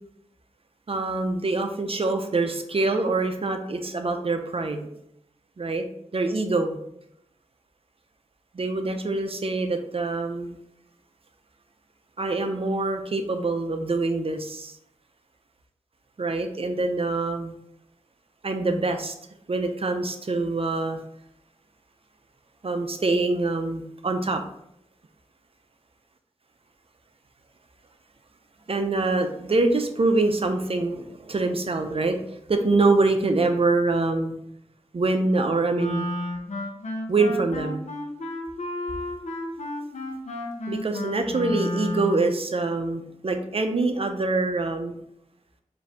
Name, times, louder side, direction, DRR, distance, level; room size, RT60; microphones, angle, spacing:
voice 1, 0.9-4.9 5.6-5.8 6.1-6.8 8.5-10.6 12.2-14.7 16.2-17.5 18.4-19.1 19.5-21.0 22.6-24.4 28.7-34.3 34.9-36.1 37.1-37.9 40.7-45.0, right 3 dB, 50° right, 6 dB, 0.6 m, -25 dB
Wind instrument woodwind instrument, 35.8-42.4, left 2 dB, 70° left, 0.8 m, -32 dB
4.5 x 2.7 x 3.5 m, 0.77 s
cardioid pair, 45°, 13 cm